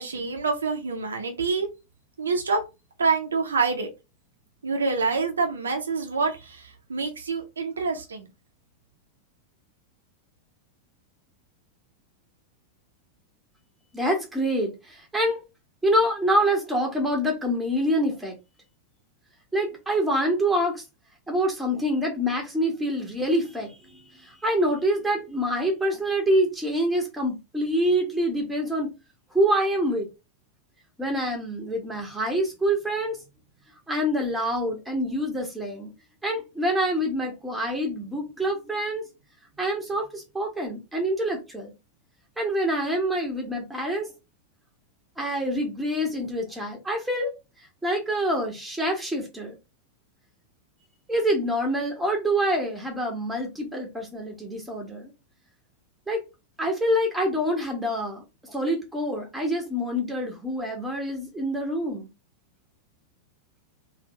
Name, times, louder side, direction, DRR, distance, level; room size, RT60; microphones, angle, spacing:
voice 1, 0.0-1.7 2.2-2.6 3.0-3.9 4.6-8.2, right 4 dB, 70° right, 0.8 m, -26 dB
voice 2, 13.9-15.4 15.8-18.4 19.5-20.8 21.3-23.8 24.2-28.9 29.3-30.1 31.0-33.2 33.9-35.9 36.2-39.0 39.6-41.7 42.4-44.1 45.2-47.3 47.8-49.5 51.1-55.1 56.1-56.2 56.6-62.1, equal, 5° right, 1.4 m, -26 dB
3.4 x 2.7 x 3.2 m
figure-of-eight pair, 90°, 0 cm